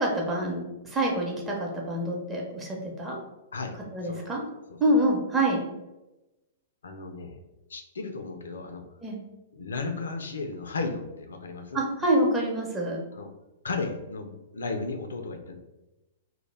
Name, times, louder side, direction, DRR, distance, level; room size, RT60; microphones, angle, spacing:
voice 1, 0.0-3.2 3.9-4.4 4.8-5.7 9.0-9.2 11.7-13.0, right 1 dB, 15° right, -2 dB, 0.6 m, -26 dB
voice 2, 6.8-7.4 7.7-8.8 9.6-11.8 13.1-13.3 13.6-15.5, left 3 dB, 75° left, 5 dB, 0.3 m, -34 dB
2.1 x 2.0 x 3.2 m, 1.0 s
figure-of-eight pair, 110°, 0 cm